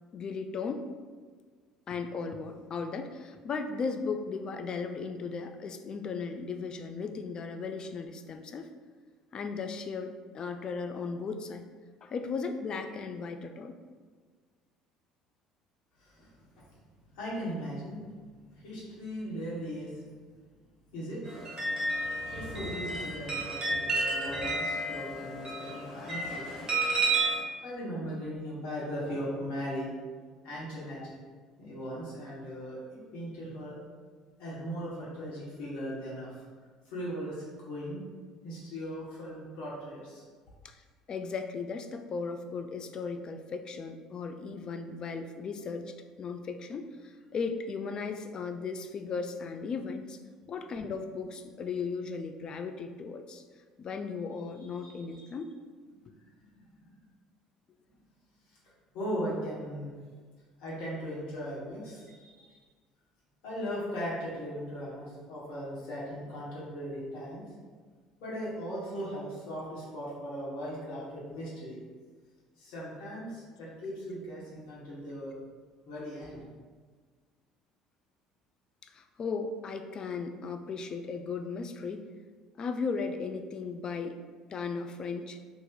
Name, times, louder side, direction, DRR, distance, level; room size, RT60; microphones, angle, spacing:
voice 1, 0.1-0.9 1.9-8.7 9.3-11.7 12.0-13.8 40.6-40.7 41.1-50.2 50.5-53.4 53.8-55.5 78.8-82.0 82.6-84.2 84.5-85.4, left 5 dB, 40° left, 7 dB, 0.3 m, -36 dB
voice 2, 16.0-16.7 17.1-20.1 20.9-21.2 21.9-26.5 27.6-29.9 30.4-31.2 31.6-33.8 34.4-36.3 36.8-38.0 38.4-40.2 54.6-54.7 55.1-55.2 56.2-56.9 57.9-58.0 58.9-59.9 60.6-62.6 63.4-67.4 68.2-71.8 72.6-75.3 75.9-76.4, equal, 65° left, -7 dB, 1.3 m, -38 dB
sound 1, 21.3-27.4, right 2 dB, 30° right, 1.3 m, -31 dB
2.9 x 2.5 x 3.7 m, 1.5 s
figure-of-eight pair, 60°, 2 cm